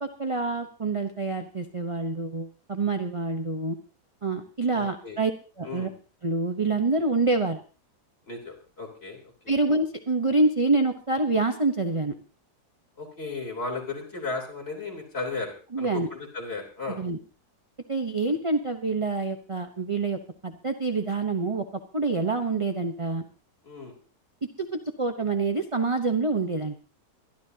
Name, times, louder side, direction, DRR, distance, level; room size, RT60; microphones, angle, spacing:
voice 1, 0.0-3.8 4.2-5.3 5.6-5.9 6.2-7.6 9.5-12.1 15.7-16.1 16.9-17.2 17.9-21.6 21.9-23.3 24.4-26.7, right 3 dB, 25° right, 6 dB, 0.8 m, -26 dB
voice 2, 4.7-5.2 5.6-5.9 8.3-9.5 13.0-17.0 23.6-23.9, left 3 dB, 40° left, 0 dB, 3.8 m, -35 dB
23.0 x 12.0 x 2.8 m, 0.36 s
omnidirectional pair, 1.7 m